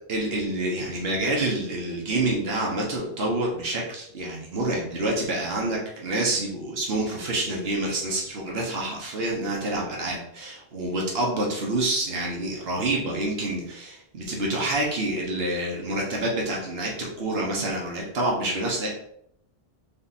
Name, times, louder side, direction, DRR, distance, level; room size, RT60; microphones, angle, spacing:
voice 1, 0.1-18.9, right 2 dB, 70° right, -2 dB, 1.3 m, -27 dB
3.6 x 3.4 x 4.1 m, 0.71 s
omnidirectional pair, 1.1 m